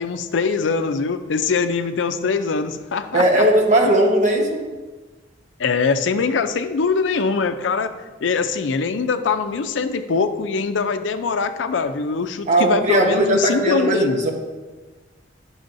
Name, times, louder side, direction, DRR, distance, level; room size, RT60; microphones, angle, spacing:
voice 1, 0.0-3.4 3.8-3.9 5.6-14.3, left 5 dB, 75° left, 10 dB, 0.5 m, -22 dB
voice 2, 3.1-4.6 12.5-14.3, right 1 dB, 40° right, 1 dB, 1.0 m, -18 dB
10.0 x 6.2 x 2.6 m, 1.3 s
head